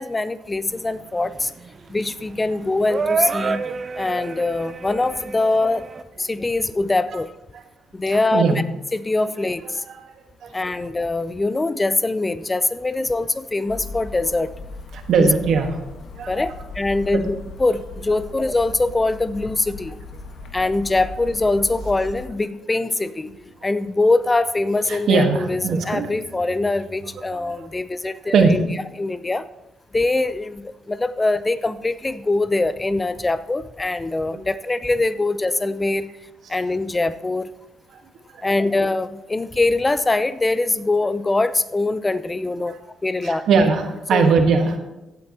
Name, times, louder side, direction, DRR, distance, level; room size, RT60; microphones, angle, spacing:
voice 1, 0.0-1.5 1.9-3.6 4.0-5.9 6.2-7.3 7.9-8.6 8.9-9.8 10.5-14.5 15.2-15.3 16.3-20.0 20.5-23.3 23.6-28.6 29.0-29.4 29.9-36.1 36.5-37.5 38.4-43.4 44.1-44.3, left 2 dB, 20° left, 14 dB, 0.6 m, -23 dB
sound 1, 0.7-6.0, right 4 dB, 40° right, 0.6 m, -28 dB
voice 2, 8.1-8.6 9.9-10.0 10.4-10.5 14.9-15.7 16.1-16.5 17.1-17.2 24.9-26.1 27.3-27.7 28.3-28.5 34.3-34.4 38.3-38.5 42.7-42.8 43.2-44.8, right 5 dB, 70° right, 5 dB, 1.5 m, -20 dB
sound 2, 13.7-22.3, left 2 dB, 85° left, 1.3 m, -37 dB
15.5 x 8.8 x 2.9 m, 0.98 s
cardioid pair, 90°, 0 cm